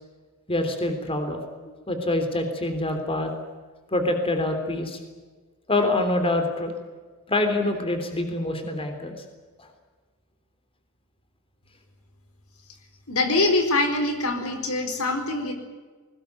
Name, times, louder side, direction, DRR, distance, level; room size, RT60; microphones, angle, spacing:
voice 1, 0.5-1.4 1.9-3.3 3.9-5.0 5.7-6.7 7.3-9.2, left 2 dB, 25° left, 6 dB, 3.5 m, -25 dB
voice 2, 13.1-15.5, left 2 dB, 80° left, 7 dB, 4.3 m, -24 dB
21.0 x 20.0 x 9.6 m, 1.4 s
head